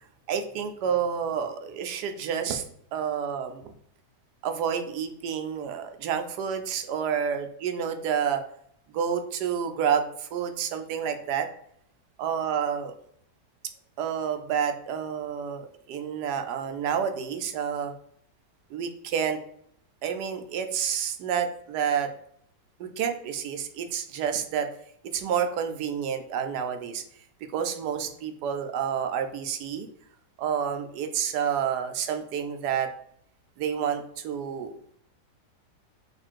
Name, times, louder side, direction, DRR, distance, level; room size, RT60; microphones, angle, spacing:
voice 1, 0.3-2.6 2.9-3.7 4.4-8.4 8.9-11.5 12.2-12.9 14.0-17.9 18.7-19.4 20.0-22.1 22.8-24.7 25.1-27.0 27.5-29.9 30.4-32.9 33.6-34.7, right 8 dB, 75° right, 6 dB, 1.1 m, -29 dB
4.2 x 2.5 x 4.4 m, 0.69 s
omnidirectional pair, 1.8 m